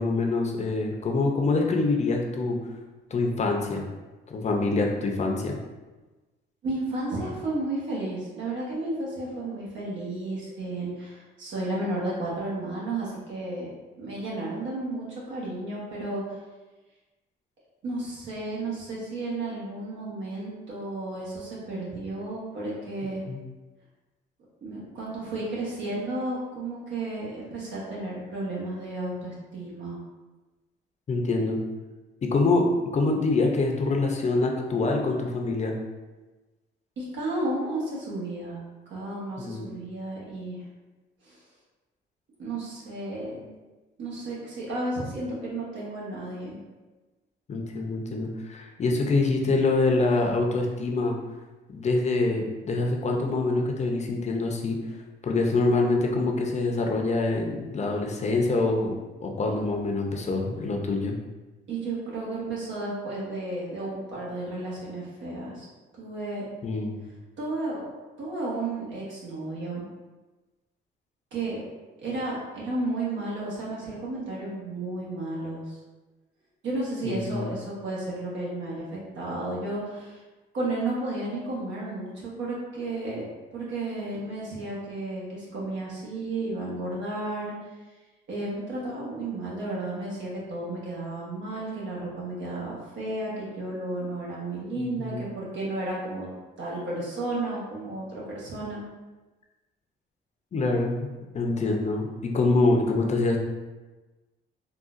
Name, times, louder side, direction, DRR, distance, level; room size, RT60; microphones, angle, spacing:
voice 1, 0.0-2.7 3.1-3.9 4.3-5.6 23.3-23.4 31.1-31.6 32.2-32.6 32.9-35.7 39.4-39.7 47.5-51.2 51.7-54.8 55.2-58.9 59.2-61.2 66.6-67.0 77.0-77.5 94.8-95.2 100.5-103.4, left 3 dB, 35° left, 1 dB, 0.6 m, -25 dB
voice 2, 6.6-13.7 14.0-16.4 17.8-23.2 24.6-30.0 37.0-38.6 38.9-40.6 41.2-41.4 42.4-43.4 44.0-46.6 61.7-65.7 66.0-66.5 67.4-67.9 68.2-69.9 71.3-71.6 72.0-75.8 76.6-78.9 79.1-80.2 80.5-87.5 88.3-96.3 96.6-98.8, right 2 dB, 70° right, -5 dB, 1.2 m, -33 dB
3.7 x 2.3 x 2.5 m, 1.2 s
cardioid pair, 90°, 20 cm